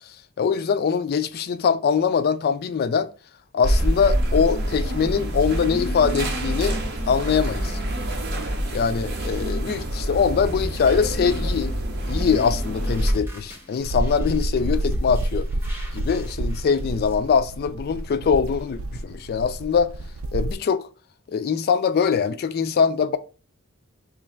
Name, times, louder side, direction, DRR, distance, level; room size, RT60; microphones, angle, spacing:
voice 1, 0.4-3.1 3.5-6.8 7.1-7.8 8.7-11.8 12.1-15.5 15.9-19.9 20.3-20.8 21.3-23.2, left 6 dB, 50° left, 0.3 m, -22 dB
sound 1, 3.6-13.1, equal, 55° right, 0.7 m, -26 dB
sound 2, 12.0-17.2, equal, 10° right, 0.8 m, -38 dB
sound 3, 13.8-20.5, right 1 dB, 75° right, 0.4 m, -28 dB
3.0 x 2.5 x 4.3 m
head